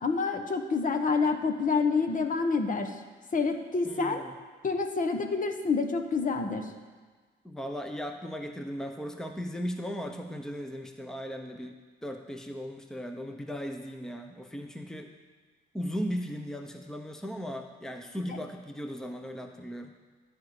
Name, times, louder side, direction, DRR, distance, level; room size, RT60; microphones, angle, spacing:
voice 1, 0.0-2.9 3.3-4.2 4.6-6.7, left 4 dB, 40° left, 6 dB, 1.2 m, -27 dB
voice 2, 3.8-4.3 7.4-15.1 15.7-19.9, equal, 5° left, 5 dB, 0.9 m, -37 dB
13.5 x 5.3 x 8.6 m, 1.4 s
cardioid pair, 90°, 20 cm